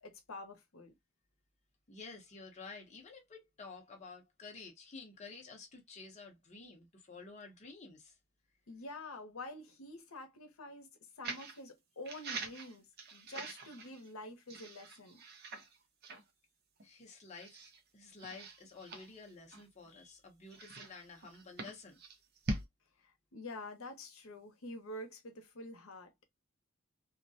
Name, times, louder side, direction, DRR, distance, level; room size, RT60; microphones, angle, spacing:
voice 1, 0.0-0.9 8.7-10.9 11.2-12.9 13.1-15.2 23.0-26.1, left 1 dB, 85° left, 0.7 m, -47 dB
voice 2, 1.9-8.1 16.8-22.0, left 4 dB, 35° left, 0.6 m, -51 dB
sound 1, 11.2-11.6 12.1-14.1 14.5-15.8 16.0-16.2 16.8-16.9 17.4-17.8 18.2-19.9 20.5-22.7, right 2 dB, 50° right, 0.5 m, -44 dB
2.3 x 2.1 x 2.6 m
head